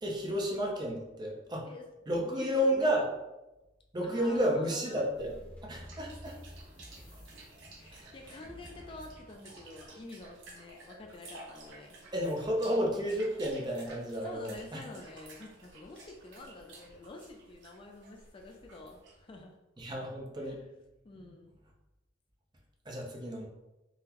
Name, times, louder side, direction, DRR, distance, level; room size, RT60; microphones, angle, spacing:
voice 1, 0.0-1.7 2.1-3.1 3.9-5.3 5.6-6.4 7.9-8.1 12.1-14.8 19.8-20.6 22.9-23.5, equal, 25° right, -1 dB, 0.5 m, -31 dB
voice 2, 2.1-3.1 4.0-5.0 5.8-6.0 7.7-12.0 14.2-19.5 20.4-20.6 21.0-21.5, left 2 dB, 30° left, 2 dB, 0.3 m, -49 dB
sound 1, 5.1-10.6, equal, 10° left, 0.9 m, -52 dB
sound 2, 5.8-19.4, right 2 dB, 85° right, 0.8 m, -53 dB
3.8 x 2.0 x 2.8 m, 0.99 s
head